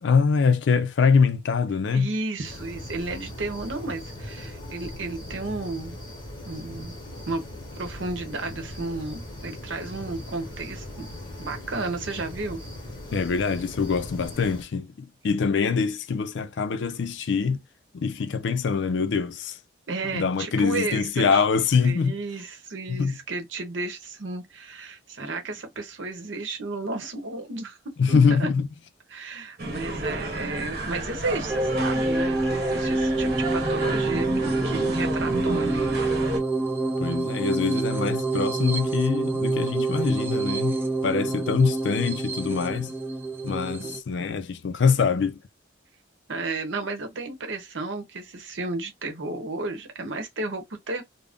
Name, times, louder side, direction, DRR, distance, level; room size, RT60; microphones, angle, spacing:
voice 1, 0.0-2.1 13.1-17.6 17.9-19.5 20.1-22.2 22.9-23.2 28.0-28.7 37.0-40.8 41.0-42.9 43.4-45.4, left 5 dB, 70° left, 0.4 m, -24 dB
voice 2, 1.9-6.0 6.4-7.0 7.2-7.4 7.8-11.1 11.4-12.6 19.9-21.5 21.8-27.8 28.1-28.5 29.1-36.1 43.8-44.0 46.3-51.0, right 3 dB, 80° right, 0.8 m, -33 dB
sound 1, 2.4-14.6, left 1 dB, 25° left, 0.9 m, -39 dB
sound 2, 29.6-36.4, right 1 dB, 50° right, 0.9 m, -32 dB
sound 3, 31.5-44.0, right 2 dB, 10° right, 0.3 m, -27 dB
2.5 x 2.0 x 3.4 m
head